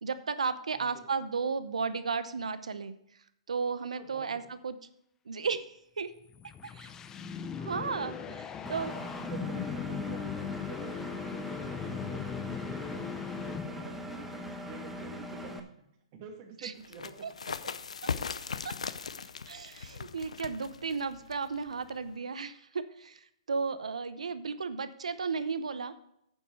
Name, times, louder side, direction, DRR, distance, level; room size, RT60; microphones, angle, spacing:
voice 1, 0.0-2.9 3.5-4.7 5.3-6.1 6.6-6.9 7.6-8.1 8.7-8.9 16.6-16.7 17.2-17.3 18.6-18.7 19.5-23.2 23.5-26.0, right 5 dB, 85° right, 13 dB, 0.8 m, -34 dB
voice 2, 0.7-1.1 3.9-4.4 8.0-8.3 8.9-13.1 13.4-15.6 16.1-17.3, right 5 dB, 40° right, 2 dB, 2.5 m, -48 dB
sound 1, 6.2-14.0, left 7 dB, 15° left, 0.5 m, -38 dB
Engine, 8.7-15.6, equal, 5° right, 1.0 m, -41 dB
sound 2, 16.8-22.2, left 6 dB, 90° left, 0.6 m, -39 dB
9.3 x 7.2 x 4.8 m, 0.75 s
hypercardioid pair, 140°, 3 cm